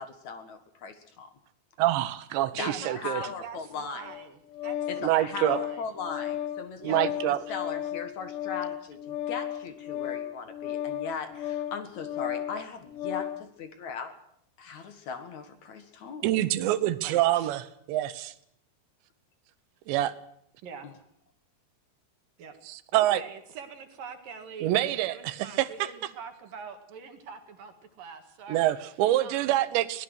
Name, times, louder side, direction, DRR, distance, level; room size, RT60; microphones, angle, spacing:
voice 1, 0.0-1.3 2.6-4.1 4.9-14.2 14.6-16.3 20.8-20.9, left 5 dB, 55° left, 9 dB, 2.3 m, -38 dB
voice 2, 1.8-3.2 5.0-5.6 6.8-7.4 16.2-18.1 19.9-20.1 22.7-23.2 24.6-25.7 28.5-30.0, right 14 dB, 85° right, 13 dB, 3.3 m, -26 dB
voice 3, 2.6-5.8 6.8-7.0 17.0-17.5 20.6-20.9 22.4-22.6 22.9-24.7 25.1-28.7 29.2-29.5, right 6 dB, 60° right, 6 dB, 3.2 m, -43 dB
Organ, 4.0-13.5, left 11 dB, 80° left, 3.1 m, -34 dB
23.5 x 18.5 x 6.4 m, 0.71 s
omnidirectional pair, 5.0 m